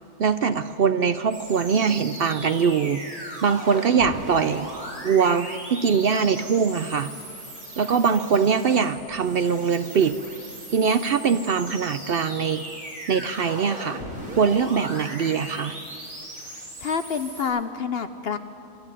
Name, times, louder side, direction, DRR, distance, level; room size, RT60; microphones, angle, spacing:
voice 1, 0.2-3.0 3.4-4.7 5.0-7.1 7.8-10.2 10.7-12.6 13.1-14.0 14.4-15.7, right 6 dB, 60° right, 11 dB, 0.6 m, -22 dB
sound 1, 1.3-17.4, right 1 dB, 85° right, 6.4 m, -38 dB
voice 2, 16.8-18.4, left 6 dB, 55° left, 10 dB, 0.8 m, -27 dB
24.5 x 12.0 x 9.8 m, 2.9 s
omnidirectional pair, 1.5 m